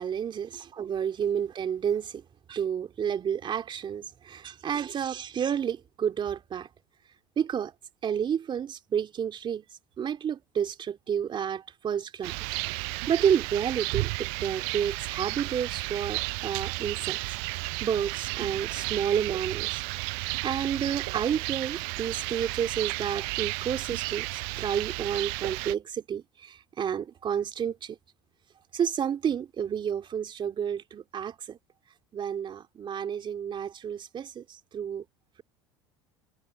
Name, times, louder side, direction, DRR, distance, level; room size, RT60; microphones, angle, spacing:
voice 1, 0.0-2.2 2.5-6.7 7.4-7.7 8.0-9.6 10.0-17.2 17.8-28.0 28.7-31.6 32.1-34.4 34.7-35.0, right 8 dB, 35° right, 3.6 m, -30 dB
Rain, 12.2-25.7, right 40 dB or more, 75° right, 7.8 m, -33 dB
supercardioid pair, 90°, 13 cm